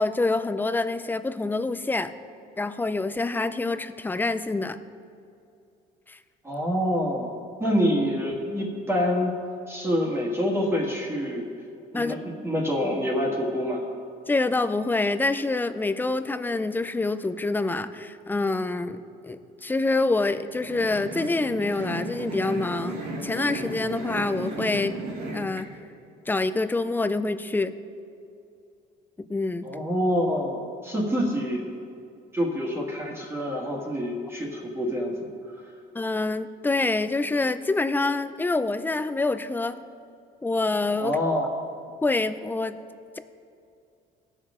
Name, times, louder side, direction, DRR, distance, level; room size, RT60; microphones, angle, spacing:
voice 1, 0.0-2.1 2.6-4.8 6.1-6.2 11.9-12.2 14.3-25.0 25.3-25.7 26.3-27.7 29.2-29.7 35.9-39.8 40.4-41.2 42.0-42.8, left 3 dB, 10° left, 11 dB, 0.4 m, -26 dB
voice 2, 6.4-9.3 9.7-11.5 11.9-12.2 12.4-13.9 29.6-31.7 32.3-35.3 41.0-41.6, equal, 15° right, -3 dB, 1.7 m, -26 dB
sound 1, 20.5-25.6, right 2 dB, 80° right, 2.5 m, -34 dB
17.5 x 6.3 x 3.7 m, 2.5 s
cardioid pair, 110°, 17 cm